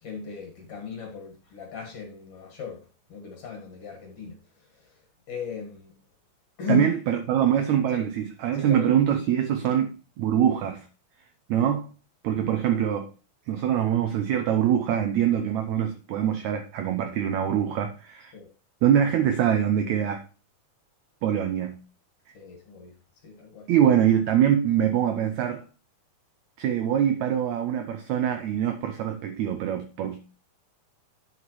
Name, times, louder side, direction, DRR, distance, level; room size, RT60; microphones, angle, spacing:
voice 1, 0.0-2.8 3.1-4.4 5.3-5.9 6.6-6.9 7.9-8.0 8.6-8.9 18.3-18.5 22.3-22.9 23.2-23.7, left 4 dB, 50° left, 2.2 m, -35 dB
voice 2, 6.7-10.8 11.5-11.9 12.2-13.1 13.5-18.3 18.8-20.2 21.2-21.8 23.7-25.6 26.6-30.2, right 9 dB, 80° right, 1.7 m, -24 dB
10.0 x 7.2 x 3.1 m
omnidirectional pair, 4.0 m